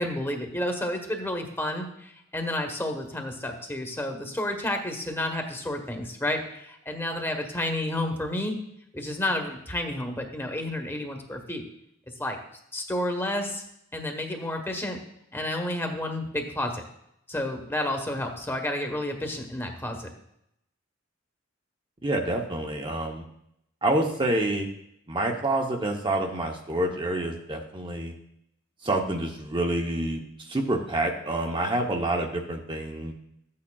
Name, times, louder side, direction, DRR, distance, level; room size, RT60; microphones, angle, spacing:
voice 1, 0.0-8.6 8.9-11.6 12.2-12.4 12.7-13.6 13.9-15.0 15.3-16.8 17.3-20.1, left 1 dB, 10° left, 4 dB, 1.1 m, -30 dB
voice 2, 22.0-23.2 23.8-24.7 25.1-28.1 28.8-33.1, right 1 dB, 25° right, 2 dB, 0.8 m, -27 dB
14.0 x 8.5 x 2.3 m, 0.77 s
head